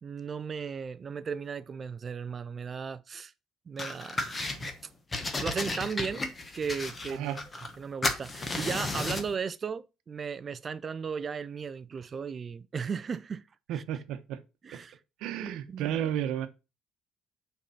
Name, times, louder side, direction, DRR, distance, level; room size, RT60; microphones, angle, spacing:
voice 1, 0.0-3.3 3.7-4.7 5.4-6.2 6.5-7.4 7.8-13.4 13.7-13.8 14.6-15.0 15.4-15.9, right 6 dB, 25° right, 0.4 m, -36 dB
sound 1, 3.8-4.7 5.1-9.3, left 2 dB, 15° left, 0.9 m, -33 dB
voice 2, 13.7-14.4 15.2-16.5, right 11 dB, 75° right, 0.9 m, -32 dB
6.6 x 4.6 x 5.6 m
cardioid pair, 175°, 0 cm